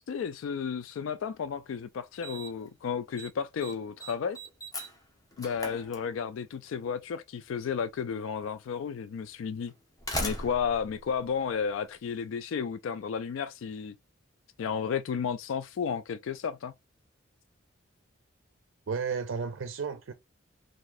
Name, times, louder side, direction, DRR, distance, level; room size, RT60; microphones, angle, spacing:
voice 1, 0.1-4.4 5.4-9.7 10.2-13.9 14.6-16.7, left 6 dB, 75° left, 0.3 m, -33 dB
Slam, 1.4-1.5 2.2-2.7 3.0-3.3 3.6-6.5 7.7-7.8 8.6-8.7 9.7-12.0, equal, 20° left, 0.9 m, -38 dB
voice 2, 18.9-20.1, right 5 dB, 70° right, 0.4 m, -33 dB
3.9 x 2.5 x 2.5 m
head